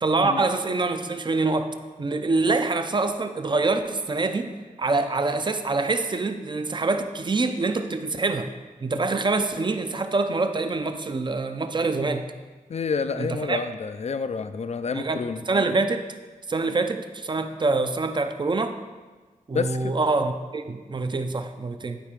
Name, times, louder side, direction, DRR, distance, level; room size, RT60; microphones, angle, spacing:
voice 1, 0.0-8.5 8.8-12.3 13.2-13.6 14.9-16.1 16.5-18.8 19.5-22.0, right 3 dB, 30° right, 8 dB, 0.6 m, -25 dB
voice 2, 12.7-15.4 19.5-19.9, left 5 dB, 50° left, 11 dB, 0.4 m, -29 dB
11.5 x 4.6 x 5.1 m, 1.3 s
wide cardioid pair, 125°, 15 cm